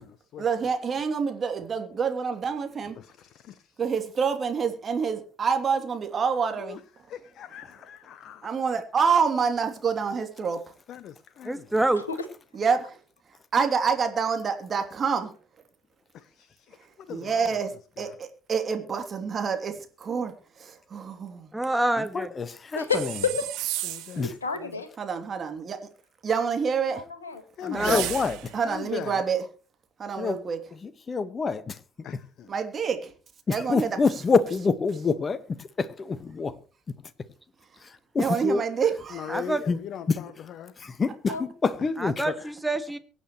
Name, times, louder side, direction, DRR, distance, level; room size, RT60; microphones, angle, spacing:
voice 1, 0.4-3.0 3.8-6.8 8.4-10.6 12.5-13.0 13.5-15.3 17.1-17.7 18.0-21.5 25.0-25.8 26.2-27.0 27.7-28.0 28.5-29.4 30.0-30.6 32.5-33.1 33.5-34.0 38.2-39.4, right 6 dB, 35° right, 2.9 m, -27 dB
voice 2, 3.0-3.7 6.6-6.8 7.1-8.5 10.9-11.7 16.1-17.5 18.0-18.2 23.8-24.8 27.6-28.1 28.6-29.2 32.0-32.5 39.1-40.7 41.8-41.9, left 9 dB, 50° left, 0.8 m, -39 dB
voice 3, 11.4-12.0 21.5-22.3 27.6-28.0 39.3-39.6 42.0-43.0, right 2 dB, 5° right, 1.9 m, -26 dB
voice 4, 22.0-22.8 24.2-24.3 27.9-28.4 30.2-30.4 30.8-31.8 33.5-35.4 35.8-36.5 38.1-38.6 39.7-39.8 40.1-40.2 40.8-42.3, left 4 dB, 30° left, 1.4 m, -26 dB
voice 5, 22.7-23.5 23.7-23.8 24.1-24.9 26.9-27.4 29.1-29.3 41.3-41.5, left 4 dB, 85° left, 1.5 m, -30 dB
sound 1, 22.9-24.2 27.7-28.6, right 15 dB, 60° right, 1.6 m, -33 dB
23.5 x 9.1 x 3.1 m
figure-of-eight pair, 55°, 0 cm